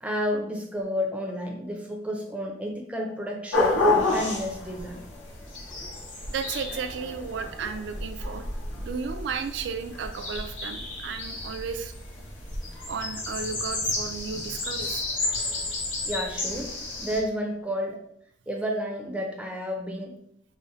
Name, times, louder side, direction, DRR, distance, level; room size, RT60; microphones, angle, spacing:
voice 1, 0.0-5.0 5.8-5.9 16.1-18.0 18.5-20.2, equal, 5° right, 1 dB, 0.5 m, -31 dB
sound 1, 3.5-17.2, left 2 dB, 90° left, 1.2 m, -30 dB
voice 2, 6.3-8.5 8.8-11.9 12.9-15.1, right 5 dB, 70° right, 6 dB, 0.3 m, -34 dB
3.9 x 2.1 x 3.9 m, 0.72 s
head